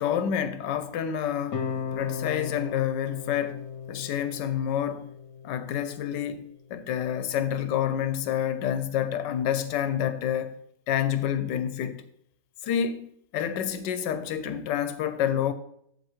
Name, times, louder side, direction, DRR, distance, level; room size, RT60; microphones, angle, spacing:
voice 1, 0.0-5.1 5.4-10.5 10.9-12.0 12.6-15.5, left 9 dB, 75° left, 1.3 m, -28 dB
sound 1, 1.5-6.6, left 7 dB, 55° left, 1.2 m, -36 dB
8.2 x 7.6 x 3.0 m
omnidirectional pair, 2.0 m